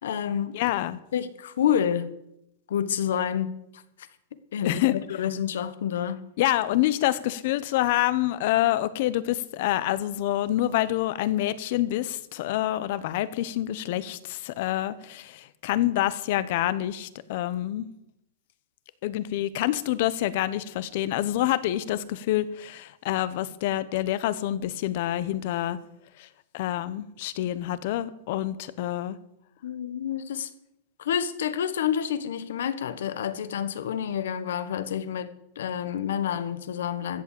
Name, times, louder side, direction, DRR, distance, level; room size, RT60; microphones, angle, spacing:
voice 1, 0.0-0.7 1.1-2.1 2.7-3.5 4.5-6.2 29.6-30.5 31.0-37.2, left 9 dB, 80° left, 1.2 m, -28 dB
voice 2, 0.5-1.0 4.6-4.9 6.4-17.9 19.0-25.8 26.2-26.3 26.5-29.2, left 14 dB, 50° left, 0.9 m, -27 dB
14.5 x 7.5 x 8.5 m
supercardioid pair, 160°, 0 cm